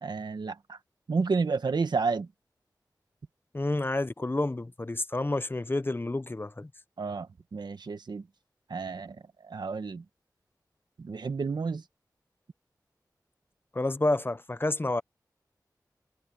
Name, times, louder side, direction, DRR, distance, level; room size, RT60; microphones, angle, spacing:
voice 1, 0.0-0.8 1.1-2.3 7.0-7.3 7.5-8.2 8.7-9.2 9.4-10.0 11.0-11.8, right 4 dB, 85° right, 1.3 m, -30 dB
voice 2, 3.5-6.7 13.7-15.0, left 2 dB, 30° left, 0.7 m, -29 dB
wide cardioid pair, 50°, 7 cm